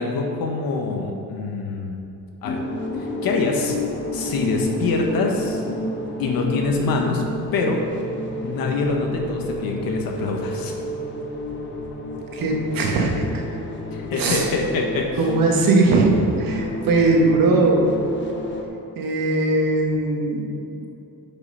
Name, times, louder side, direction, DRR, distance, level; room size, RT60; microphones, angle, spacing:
voice 1, 0.0-2.0 2.4-2.6 3.0-3.8 4.1-5.6 6.2-7.2 7.5-7.8 8.4-10.7 13.9-15.2, left 3 dB, 70° left, 2 dB, 1.4 m, -25 dB
sound 1, 2.4-18.7, left 1 dB, 30° left, 0.9 m, -30 dB
voice 2, 12.3-13.2 14.1-14.5 15.2-17.9 19.0-20.9, right 3 dB, 65° right, 0 dB, 1.5 m, -20 dB
9.3 x 5.7 x 5.5 m, 2.8 s
cardioid pair, 170°, 36 cm